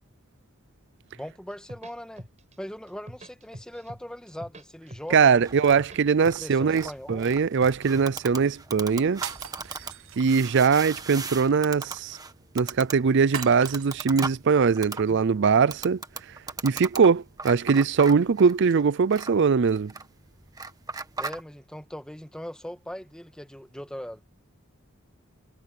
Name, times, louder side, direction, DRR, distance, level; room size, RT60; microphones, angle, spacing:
voice 1, 1.1-2.3 2.6-5.6 6.4-7.4 21.2-24.2, equal, 5° left, 1.6 m, -40 dB
sound 1, 1.5-2.5 2.9-4.0 4.3-5.2 5.6-7.4 7.6-8.5, right 1 dB, 35° right, 7.5 m, -44 dB
voice 2, 5.1-9.2 10.2-12.2 12.5-16.0 16.6-19.9, right 5 dB, 55° right, 0.5 m, -21 dB
sound 2, 5.4-21.4, right 4 dB, 15° right, 1.4 m, -39 dB
sound 3, 9.1-10.6 13.3-14.2, right 8 dB, 75° right, 1.6 m, -39 dB
head